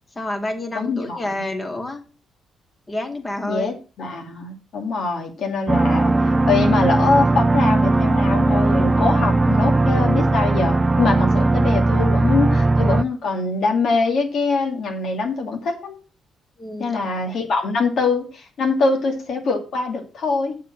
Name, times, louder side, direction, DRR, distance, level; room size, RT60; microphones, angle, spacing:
voice 1, 0.2-2.0 2.9-3.7 16.6-17.0 17.3-17.4, left 1 dB, 25° left, 5 dB, 2.2 m, -29 dB
voice 2, 0.7-1.4 3.4-15.9 16.8-20.5, left 4 dB, 65° left, 3 dB, 2.6 m, -23 dB
sound 1, 5.7-13.0, right 2 dB, 20° right, 0.5 m, -18 dB
7.4 x 7.2 x 6.2 m, 0.34 s
cardioid pair, 90°, 0 cm